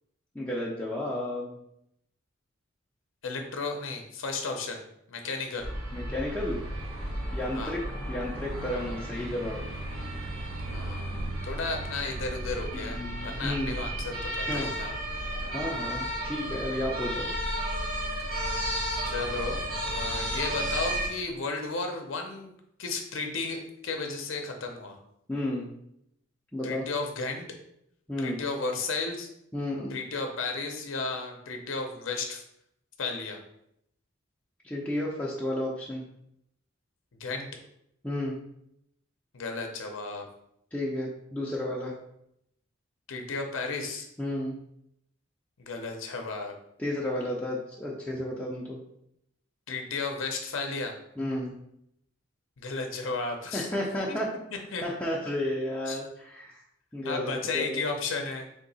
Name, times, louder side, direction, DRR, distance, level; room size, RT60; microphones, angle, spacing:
voice 1, 0.3-1.6 5.9-6.6 7.3-7.8 8.1-9.6 12.7-13.8 14.4-14.7 15.5-17.3 25.3-25.7 26.5-26.8 28.1-28.4 29.5-30.0 34.6-36.0 38.0-38.4 40.7-41.9 44.2-44.6 46.8-48.8 51.2-51.5 53.5-54.3 54.8-56.6 56.9-57.8, left 1 dB, 5° left, -5 dB, 0.5 m, -32 dB
voice 2, 3.2-4.8 5.1-5.7 7.5-7.8 10.6-14.9 15.5-15.6 16.5-16.6 18.2-18.5 19.0-22.5 22.8-25.0 26.6-27.5 28.2-29.3 29.9-32.4 33.0-33.4 37.1-37.5 39.3-40.2 43.1-44.1 45.6-46.5 49.7-50.9 52.6-53.7 54.1-54.2 54.7-54.8 55.9-56.0 57.0-58.5, left 3 dB, 70° left, 4 dB, 0.6 m, -34 dB
sound 1, 5.6-21.1, right 1 dB, 80° right, 1.1 m, -33 dB
3.7 x 2.8 x 4.0 m, 0.77 s
head